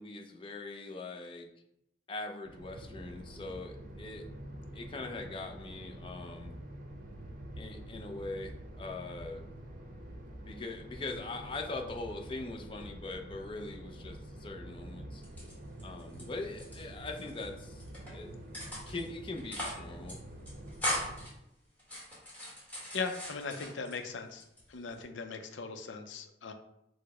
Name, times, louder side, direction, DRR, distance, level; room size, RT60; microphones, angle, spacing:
voice 1, 0.0-1.5 2.1-4.2 4.7-6.5 7.6-9.4 10.4-15.2 15.8-18.3 18.9-20.2, left 3 dB, 30° left, 3 dB, 0.4 m, -42 dB
sound 1, 2.4-21.3, right 1 dB, 45° right, 0.7 m, -47 dB
sound 2, 15.2-16.2 16.5-17.4 17.8-18.1 18.5-19.1 19.4-19.8 20.1-20.2 20.5-21.3 21.8-24.0 24.4-25.0, left 1 dB, 10° left, 1.3 m, -39 dB
voice 2, 22.9-24.4 24.7-26.5, left 4 dB, 85° left, 7 dB, 0.5 m, -39 dB
4.8 x 2.1 x 4.7 m, 0.81 s
head